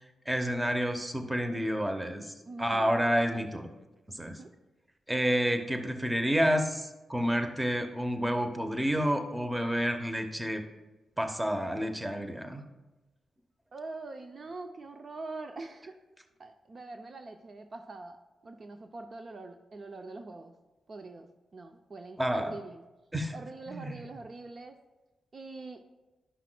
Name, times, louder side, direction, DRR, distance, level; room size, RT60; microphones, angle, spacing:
voice 1, 0.3-3.7 4.1-4.4 5.1-10.6 11.2-12.6 22.2-22.5 23.1-23.3 23.7-24.0, equal, 15° right, 6 dB, 1.0 m, -29 dB
voice 2, 2.5-2.9 3.3-3.6 4.3-4.5 13.7-15.9 16.4-18.2 18.4-20.5 20.9-22.8 23.3-24.8 25.3-25.8, right 3 dB, 50° right, 6 dB, 0.5 m, -44 dB
11.5 x 5.8 x 2.3 m, 1.1 s
supercardioid pair, 50°, 0 cm